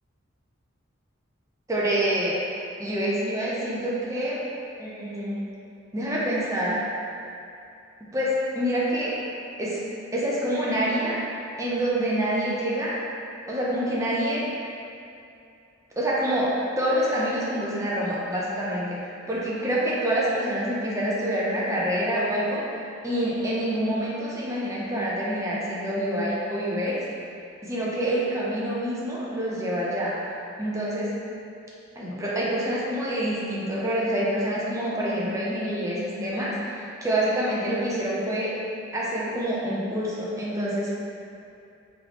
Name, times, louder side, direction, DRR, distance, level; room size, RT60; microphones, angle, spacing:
voice 1, 1.7-2.4 2.8-4.4 4.8-5.5 5.9-6.9 8.1-9.2 9.6-9.8 10.1-11.2 11.6-13.0 13.5-14.5 16.0-22.6 23.0-27.0 27.6-30.2 30.6-31.1 32.0-38.6 38.9-40.9, right 1 dB, 15° right, -6 dB, 0.6 m, -26 dB
3.9 x 3.8 x 2.9 m, 2.6 s
head